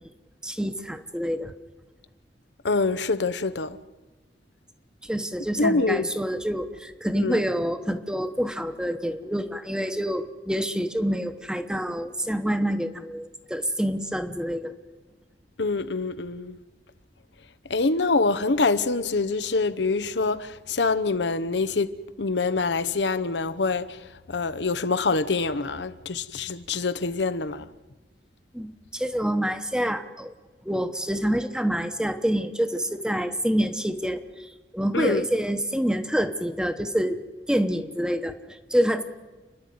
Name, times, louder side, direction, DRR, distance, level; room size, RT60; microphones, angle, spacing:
voice 1, 0.4-1.5 5.0-14.7 28.5-30.3 30.6-37.2 37.5-39.0, equal, 5° right, 1.1 m, -27 dB
voice 2, 2.6-3.8 5.6-6.1 7.2-7.4 15.6-16.6 17.7-21.9 22.2-24.0 24.3-27.6 34.9-35.2, left 3 dB, 85° left, 0.9 m, -25 dB
29.5 x 11.0 x 9.4 m
head